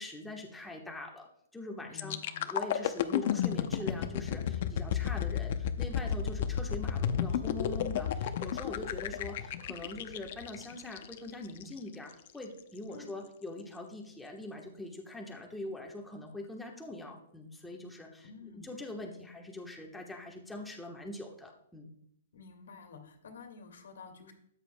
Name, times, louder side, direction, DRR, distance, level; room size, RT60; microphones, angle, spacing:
voice 1, 0.0-18.3 18.5-21.9, left 2 dB, 5° left, 0 dB, 1.2 m, -43 dB
voice 2, 1.8-2.5 12.9-13.1 18.2-18.8 22.3-24.3, left 6 dB, 85° left, 5 dB, 2.0 m, -50 dB
sound 1, 2.0-11.8 12.3-12.4, left 9 dB, 50° left, 0.7 m, -33 dB
13.0 x 9.0 x 2.2 m, 0.75 s
hypercardioid pair, 160°, 0 cm